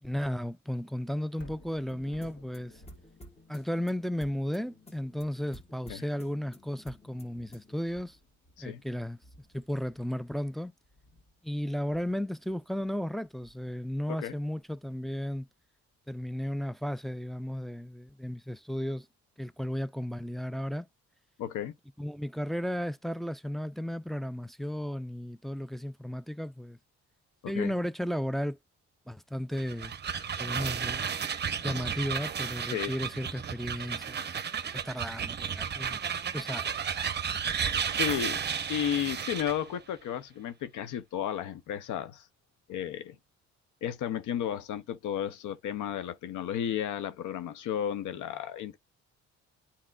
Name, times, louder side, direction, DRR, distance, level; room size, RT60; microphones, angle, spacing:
voice 1, 0.0-2.8 3.5-8.2 8.6-9.2 9.5-10.7 11.4-15.5 16.1-19.1 19.4-20.9 22.0-26.8 27.5-28.6 29.1-29.9 30.4-31.2 31.6-34.3 34.7-36.0 36.3-36.7, equal, ahead, 0.3 m, -34 dB
Thunder, 1.4-15.5 16.0-16.1, left 1 dB, 55° left, 2.9 m, -58 dB
sound 1, 1.9-7.9, left 1 dB, 20° left, 1.6 m, -54 dB
voice 2, 21.4-21.7 27.4-27.7 32.7-32.9 38.0-38.4 38.7-42.3 42.7-43.2 43.8-48.8, left 10 dB, 80° left, 0.7 m, -33 dB
sound 2, 29.5-39.6, right 7 dB, 35° right, 0.7 m, -33 dB
9.9 x 4.2 x 2.4 m
cardioid pair, 90°, 30 cm